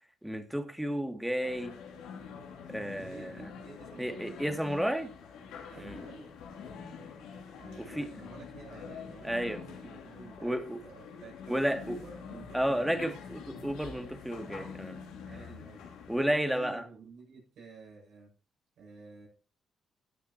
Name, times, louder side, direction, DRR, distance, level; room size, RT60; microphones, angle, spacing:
voice 1, 0.2-1.7 2.7-3.3 4.0-5.1 5.8-6.0 7.9-8.1 9.2-9.6 10.4-10.8 11.5-12.0 12.5-15.0 16.1-16.8, equal, 5° right, 7 dB, 2.4 m, -32 dB
sound 1, 1.4-16.2, left 6 dB, 90° left, 2.9 m, -46 dB
voice 2, 3.0-4.3 5.7-6.3 7.6-13.0 15.3-15.8 16.4-18.3 18.8-19.3, right 5 dB, 80° right, -3 dB, 7.7 m, -50 dB
16.5 x 9.4 x 2.9 m, 0.37 s
supercardioid pair, 60°, 0 cm